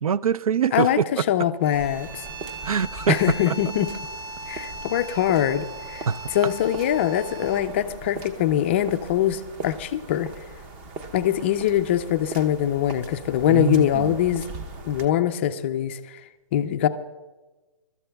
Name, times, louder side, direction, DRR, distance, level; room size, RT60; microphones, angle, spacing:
voice 1, 0.0-1.1 2.6-3.2 3.5-3.6 6.1-6.3 13.5-14.2, right 7 dB, 80° right, 0.5 m, -24 dB
voice 2, 0.7-2.3 3.1-3.9 4.5-6.1 6.3-10.3 11.1-14.5 14.9-16.0 16.5-16.9, left 11 dB, 20° left, 0.4 m, -23 dB
sound 1, 1.6-7.8, right 2 dB, 40° right, 4.1 m, -39 dB
sound 2, 1.7-15.1, right 3 dB, 20° right, 0.7 m, -40 dB
27.5 x 13.5 x 2.3 m
hypercardioid pair, 150°, 18 cm